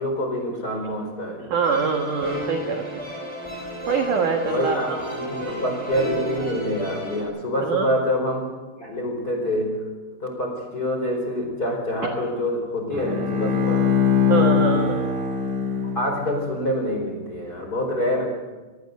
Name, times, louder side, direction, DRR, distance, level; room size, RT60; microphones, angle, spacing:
voice 1, 0.0-1.5 4.4-8.5 8.8-9.9 10.2-13.9 15.9-18.3, equal, 20° left, 3 dB, 4.2 m, -26 dB
voice 2, 1.5-2.9 3.9-5.0 7.6-7.9 14.3-15.1, right 5 dB, 65° right, 3 dB, 2.0 m, -24 dB
sound 1, 1.6-7.2, left 1 dB, 5° right, 4.7 m, -32 dB
Bowed string instrument, 12.9-16.5, left 7 dB, 40° right, 5.4 m, -22 dB
26.0 x 18.5 x 6.6 m, 1.2 s
omnidirectional pair, 6.0 m